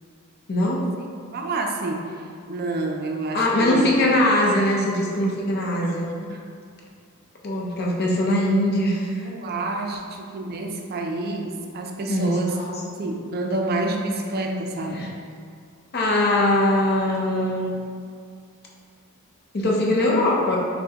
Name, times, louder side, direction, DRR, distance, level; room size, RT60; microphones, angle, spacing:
voice 1, 0.5-0.8 3.3-6.1 7.4-9.2 12.1-12.4 14.9-15.1 15.9-17.8 19.5-20.6, left 1 dB, 45° left, -3 dB, 0.6 m, -21 dB
voice 2, 1.3-3.9 5.8-6.4 9.2-15.1, right 2 dB, 45° right, 2 dB, 0.4 m, -28 dB
5.7 x 2.1 x 2.8 m, 2.2 s
head